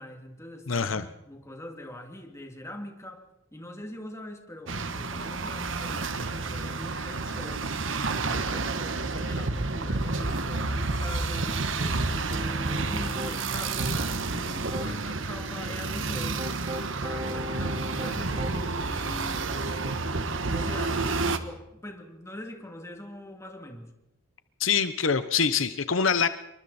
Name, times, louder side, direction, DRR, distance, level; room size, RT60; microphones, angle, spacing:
voice 1, 0.0-7.8 8.2-16.5 17.0-23.9, left 1 dB, 15° left, 4 dB, 2.8 m, -43 dB
voice 2, 0.7-1.0 24.6-26.3, left 6 dB, 75° left, 12 dB, 1.0 m, -24 dB
sound 1, 4.7-21.4, right 3 dB, 70° right, 1.4 m, -30 dB
Piano, 12.3-13.4 13.8-14.9 15.5-18.8, equal, 35° right, 1.7 m, -37 dB
27.0 x 23.5 x 4.3 m, 0.83 s
head